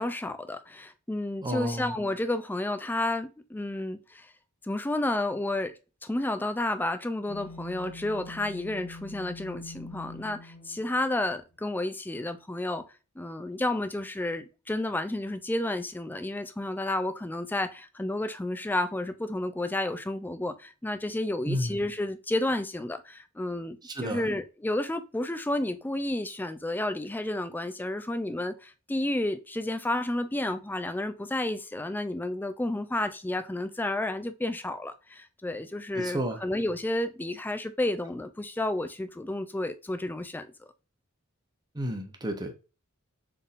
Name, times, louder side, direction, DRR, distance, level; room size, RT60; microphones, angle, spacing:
voice 1, 0.0-4.3 4.6-12.8 13.2-23.8 24.0-40.5, left 1 dB, 10° left, 0.4 m, -31 dB
voice 2, 1.4-2.0 21.4-21.9 23.8-24.3 35.9-36.4 41.7-42.5, equal, 20° right, 0.8 m, -31 dB
sound 1, 7.3-11.5, left 2 dB, 30° left, 0.9 m, -45 dB
4.1 x 3.6 x 2.5 m
head